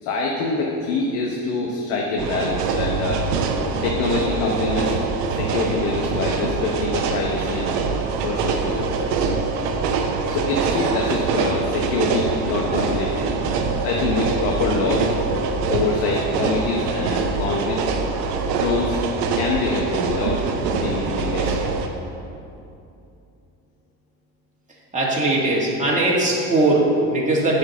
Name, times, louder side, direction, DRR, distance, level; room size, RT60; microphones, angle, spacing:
voice 1, 0.0-3.2 3.8-5.0 5.3-7.7 8.2-9.0 10.3-13.3 13.8-15.1 15.7-17.9 18.4-19.0 19.3-21.6, left 3 dB, 75° left, 0 dB, 1.1 m, -25 dB
sound 1, 2.2-21.9, right 4 dB, 90° right, 0.9 m, -24 dB
voice 2, 24.9-27.6, right 2 dB, 15° right, -5 dB, 2.3 m, -20 dB
8.7 x 4.9 x 7.1 m, 2.6 s
hypercardioid pair, 70°, 45 cm